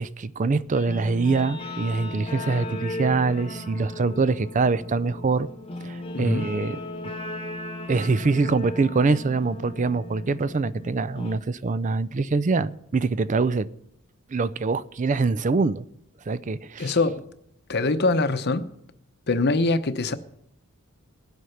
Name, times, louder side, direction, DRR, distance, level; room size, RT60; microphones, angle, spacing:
voice 1, 0.0-5.5 5.8-6.8 7.9-13.7 14.3-15.9 16.3-16.9, right 4 dB, 35° right, 0.4 m, -24 dB
Guitar, 0.7-11.4, left 2 dB, 25° left, 1.1 m, -36 dB
voice 2, 6.1-6.5 16.8-17.2 17.7-18.7 19.3-20.1, left 3 dB, 50° left, 0.8 m, -23 dB
20.0 x 8.0 x 5.8 m
head